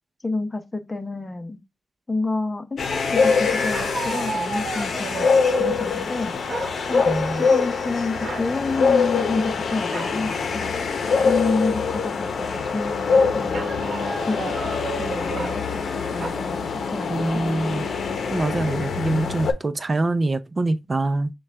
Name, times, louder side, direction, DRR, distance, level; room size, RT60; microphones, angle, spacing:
voice 1, 0.2-1.6 2.1-6.4 6.9-10.8 11.2-13.7 14.2-17.4, left 3 dB, 25° left, 0.8 m, -29 dB
sound 1, 2.8-19.5, left 5 dB, 75° left, 0.7 m, -24 dB
sound 2, 3.7-5.8 6.5-7.2 7.5-7.8 8.2-8.5 9.9-10.2 10.7-10.8 11.1-11.6 13.5-15.6 16.2-16.3, right 4 dB, 65° right, 0.9 m, -32 dB
voice 2, 7.1-7.5 17.1-17.9 18.3-21.3, right 2 dB, 35° right, 0.6 m, -24 dB
6.2 x 2.4 x 3.3 m
wide cardioid pair, 95°, 0 cm